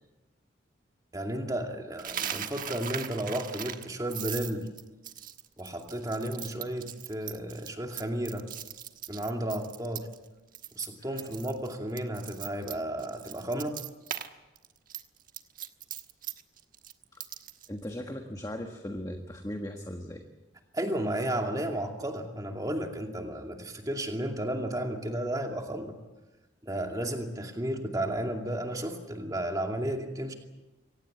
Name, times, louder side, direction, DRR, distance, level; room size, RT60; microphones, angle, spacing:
voice 1, 1.1-4.7 5.6-8.5 9.1-10.1 10.7-13.8 20.7-26.0 26.6-30.3, right 1 dB, 20° right, 3 dB, 2.5 m, -33 dB
Coin (dropping), 2.0-10.3 10.5-10.9 11.2-14.3 14.6-17.7, right 10 dB, 45° right, 1.3 m, -39 dB
voice 2, 17.7-20.2, left 1 dB, 20° left, 4 dB, 1.5 m, -38 dB
24.5 x 18.0 x 8.0 m, 1.1 s
head